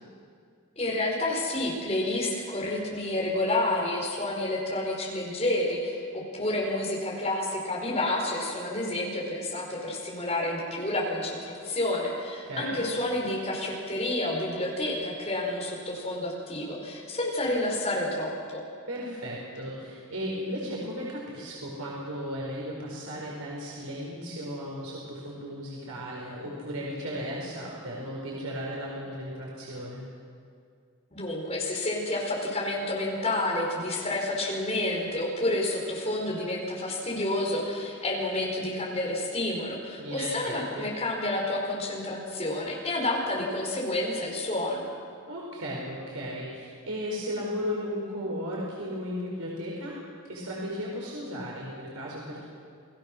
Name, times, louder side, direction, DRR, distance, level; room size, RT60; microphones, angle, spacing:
voice 1, 0.8-18.6 31.1-44.9, left 1 dB, 30° left, -2 dB, 4.7 m, -29 dB
voice 2, 12.4-12.8 18.9-30.1 40.0-40.9 45.3-50.0 50.3-52.5, equal, 90° right, -4 dB, 4.7 m, -35 dB
28.0 x 18.5 x 6.4 m, 2.3 s
head